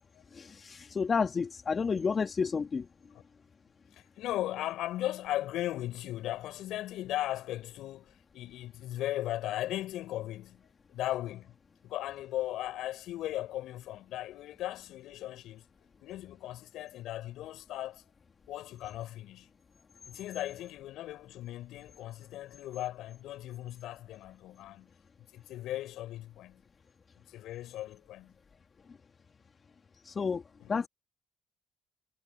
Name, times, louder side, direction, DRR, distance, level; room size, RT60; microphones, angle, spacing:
voice 1, 0.3-2.9 30.0-30.4 30.7-30.9, left 5 dB, 40° left, 3.4 m, -30 dB
voice 2, 3.9-10.6 10.9-11.5 11.8-15.6 16.0-18.0 18.5-19.5 20.0-24.9 25.3-26.6 27.2-28.4 30.6-30.7, left 14 dB, 75° left, 7.3 m, -37 dB
hypercardioid pair, 60°, 0 cm